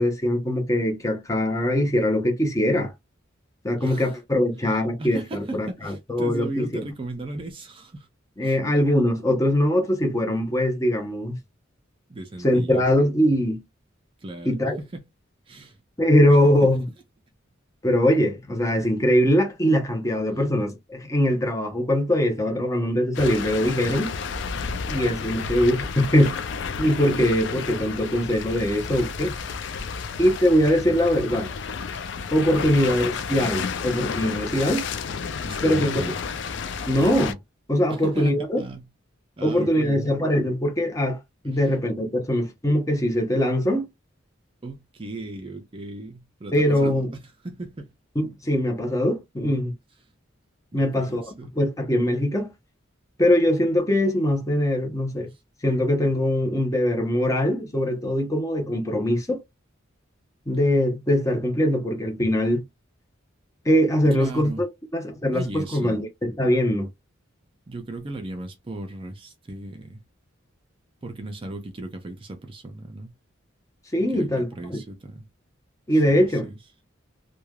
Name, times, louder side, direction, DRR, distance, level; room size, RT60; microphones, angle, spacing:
voice 1, 0.0-2.9 3.6-6.8 8.4-11.4 12.4-13.6 14.4-14.8 16.0-16.8 17.8-24.1 24.9-26.4 26.8-29.4 30.2-31.5 32.3-34.8 35.6-36.0 36.9-37.4 37.7-38.6 39.4-41.2 41.4-43.9 46.5-47.1 48.2-49.7 50.7-51.2 51.5-52.5 53.2-55.3 55.6-59.4 60.5-62.6 63.6-64.7 64.9-66.9 73.9-74.8 75.9-76.5, equal, 15° left, 0.7 m, -22 dB
voice 2, 3.8-4.2 4.6-8.1 8.4-8.6 12.1-12.9 14.2-15.0 15.5-15.8 16.4-16.7 30.0-30.2 31.2-31.4 32.8-32.9 35.4-36.2 37.9-38.9 39.4-40.2 41.4-41.7 44.6-47.9 50.7-51.5 55.3-55.4 64.1-64.6 65.3-66.0 67.7-70.0 71.0-73.1 74.0-75.3 75.9-76.6, right 2 dB, 25° right, 0.4 m, -37 dB
sound 1, 23.1-37.3, left 5 dB, 60° left, 0.3 m, -31 dB
3.1 x 2.2 x 2.2 m
head